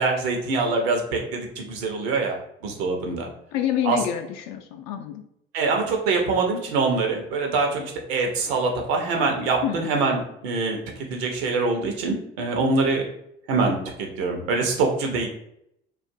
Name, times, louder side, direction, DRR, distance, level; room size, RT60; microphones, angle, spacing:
voice 1, 0.0-2.4 2.6-3.3 3.8-4.0 5.5-10.8 11.1-13.0 13.5-15.3, right 3 dB, 75° right, 2 dB, 0.6 m, -24 dB
voice 2, 3.5-5.2 9.6-9.9, left 10 dB, 60° left, 5 dB, 0.5 m, -27 dB
2.4 x 2.3 x 2.6 m, 0.75 s
hypercardioid pair, 55°, 31 cm